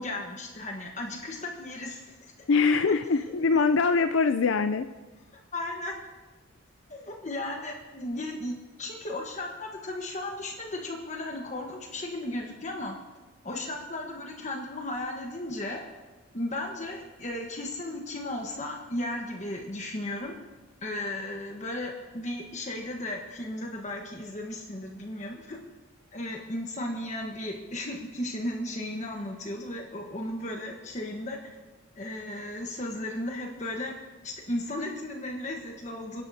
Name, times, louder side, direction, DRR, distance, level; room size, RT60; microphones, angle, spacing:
voice 1, 0.0-2.1 5.3-6.0 6.9-13.0 13.4-15.8 16.3-20.3 20.8-25.6 26.1-31.5 31.9-34.0 34.2-36.2, left 1 dB, 35° left, 1 dB, 1.3 m, -35 dB
voice 2, 2.5-4.9, left 4 dB, 65° left, 9 dB, 0.4 m, -23 dB
26.5 x 10.5 x 2.8 m, 1.2 s
head